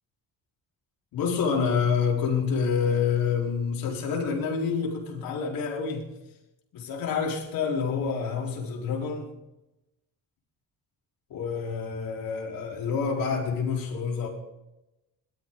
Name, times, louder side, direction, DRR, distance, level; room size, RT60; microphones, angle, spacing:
voice 1, 1.1-6.1 6.7-9.3 11.3-14.3, left 6 dB, 80° left, 4.5 m, -27 dB
21.0 x 13.0 x 4.0 m
cardioid pair, 120°, 34 cm